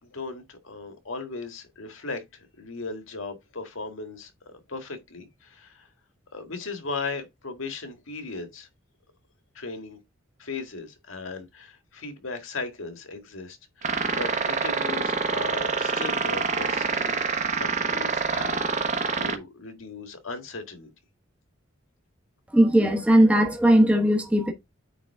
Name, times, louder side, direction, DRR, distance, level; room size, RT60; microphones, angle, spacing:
voice 1, 0.0-5.9 6.3-8.7 9.6-10.0 10.4-17.3 17.6-20.9, left 3 dB, 70° left, 1.7 m, -37 dB
sound 1, 13.8-19.3, right 5 dB, 35° right, 1.2 m, -26 dB
voice 2, 22.5-24.5, right 1 dB, 5° right, 1.1 m, -18 dB
9.0 x 3.8 x 3.5 m
head